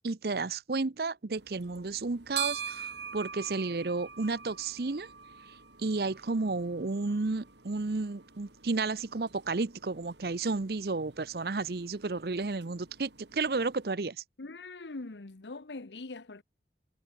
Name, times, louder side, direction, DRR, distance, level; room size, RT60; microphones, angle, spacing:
voice 1, 0.0-5.1 5.8-14.2, right 3 dB, 60° right, 0.7 m, -32 dB
sound 1, 1.4-13.9, right 8 dB, 85° right, 5.3 m, -44 dB
voice 2, 14.4-16.4, left 3 dB, 85° left, 1.0 m, -42 dB
head